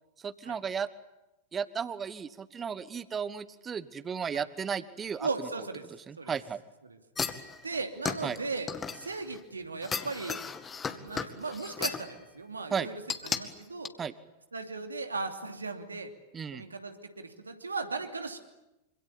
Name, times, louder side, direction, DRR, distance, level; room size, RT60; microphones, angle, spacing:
voice 1, 0.2-0.9 1.5-5.3 6.1-6.6 8.2-8.4 12.7-12.9 14.0-14.1 16.3-16.6, right 6 dB, 20° right, 16 dB, 1.3 m, -34 dB
voice 2, 5.2-5.9 6.2-6.3 6.8-7.0 7.6-10.4 10.8-13.9 14.5-16.1 16.5-18.4, right 3 dB, 75° right, 5 dB, 2.9 m, -37 dB
sound 1, 7.2-9.4 9.8-12.1 13.1-13.4 13.9-14.0, left 6 dB, 20° left, 2.1 m, -35 dB
26.5 x 26.0 x 8.6 m, 0.96 s
figure-of-eight pair, 90°, 0 cm